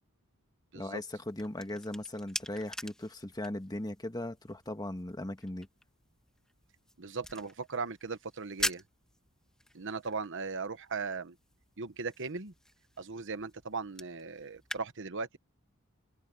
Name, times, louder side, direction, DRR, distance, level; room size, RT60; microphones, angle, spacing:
voice 1, 0.7-5.7, left 1 dB, 20° left, 1.5 m, -38 dB
sound 1, 1.1-14.8, left 1 dB, 5° left, 1.7 m, -44 dB
voice 2, 7.0-8.8 9.7-11.4 11.8-12.5 13.0-15.4, right 4 dB, 60° right, 1.1 m, -38 dB
head